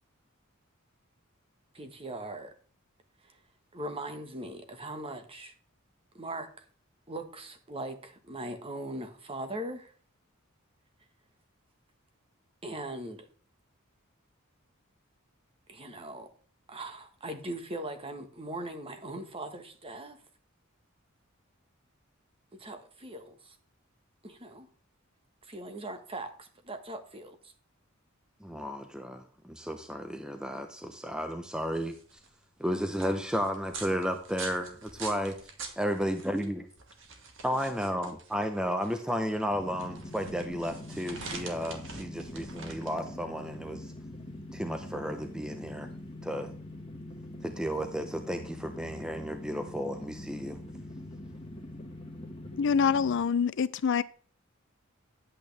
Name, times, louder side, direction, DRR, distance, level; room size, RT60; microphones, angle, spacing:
voice 1, 1.7-2.5 3.2-3.4 3.7-5.5 6.1-6.6 7.1-9.9 12.6-13.3 15.7-16.3 16.7-20.2 22.5-23.6 24.2-24.7 25.4-27.5 41.2-41.5, right 1 dB, 25° right, 1.4 m, -40 dB
voice 2, 28.4-32.2 32.6-35.4 35.8-36.7 37.4-43.9 44.5-45.9 46.2-46.5 47.4-50.6, equal, 5° right, 0.7 m, -33 dB
sound 1, 31.7-46.1, right 4 dB, 65° right, 1.9 m, -46 dB
sound 2, 39.5-53.2, left 1 dB, 25° left, 1.6 m, -43 dB
voice 3, 52.6-54.0, left 6 dB, 60° left, 0.4 m, -25 dB
10.5 x 8.5 x 3.3 m
head